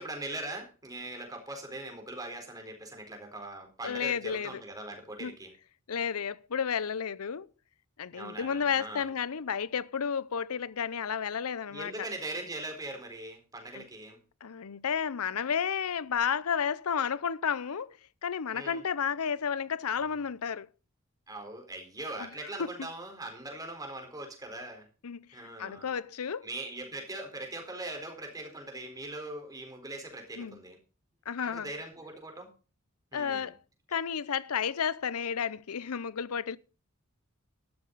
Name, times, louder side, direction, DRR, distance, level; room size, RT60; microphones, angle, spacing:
voice 1, 0.0-5.5 8.1-9.1 11.7-14.2 18.5-18.8 21.3-24.9 25.3-26.0 26.4-30.8 31.4-32.5 33.1-33.5, right 2 dB, 15° right, 4.3 m, -41 dB
voice 2, 3.8-4.6 5.2-5.3 5.9-7.5 8.0-12.1 13.7-13.9 14.4-18.0 18.2-20.7 22.2-22.3 22.6-22.9 25.0-26.5 30.4-30.6 31.3-31.7 33.1-33.6 33.9-36.6, left 7 dB, 80° left, 0.6 m, -32 dB
13.5 x 12.5 x 4.1 m
head